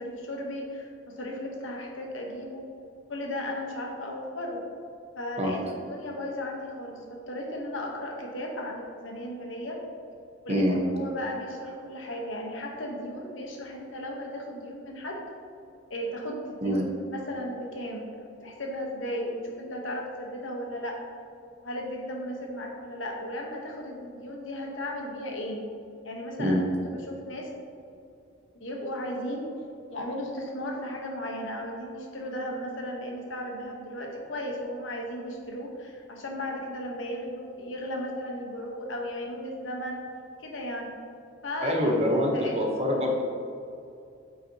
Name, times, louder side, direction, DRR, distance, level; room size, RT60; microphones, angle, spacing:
voice 1, 0.0-2.7 3.1-4.6 5.1-9.8 10.4-15.2 15.9-21.0 21.6-25.6 26.0-26.6 27.1-27.5 28.5-29.5 29.9-40.0 40.4-40.9 41.4-42.8, left 1 dB, 80° left, 0 dB, 1.2 m, -35 dB
voice 2, 41.6-43.2, equal, 35° right, 0 dB, 1.0 m, -25 dB
8.3 x 5.7 x 2.9 m, 2.5 s
head